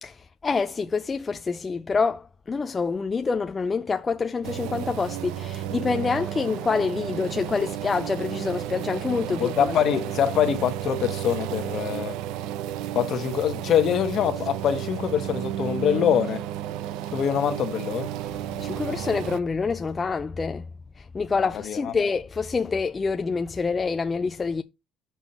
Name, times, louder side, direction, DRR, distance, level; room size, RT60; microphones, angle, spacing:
voice 1, 0.0-9.8 18.6-20.7 21.0-24.6, left 4 dB, 20° left, 0.3 m, -27 dB
sound 1, 4.4-19.4, right 12 dB, 80° right, 0.5 m, -32 dB
voice 2, 9.3-12.2 12.9-16.4 17.1-18.1 21.4-21.9, left 9 dB, 45° left, 1.1 m, -24 dB
6.1 x 5.7 x 5.4 m
cardioid pair, 155°, 0 cm